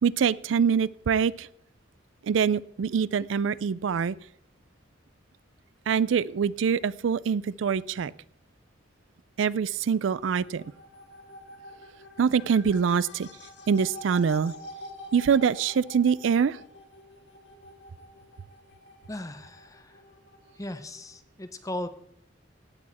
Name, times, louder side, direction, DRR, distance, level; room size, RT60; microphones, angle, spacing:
voice 1, 0.0-1.5 2.2-4.2 5.9-8.1 9.4-10.6 12.2-13.3 13.7-14.5 15.1-16.6, right 6 dB, 80° right, 20 dB, 0.4 m, -24 dB
sound 1, 9.9-21.2, left 1 dB, 65° left, 1.9 m, -47 dB
voice 2, 19.1-20.0 20.6-21.9, left 1 dB, 20° left, 11 dB, 0.9 m, -37 dB
16.5 x 8.5 x 4.2 m, 0.73 s
head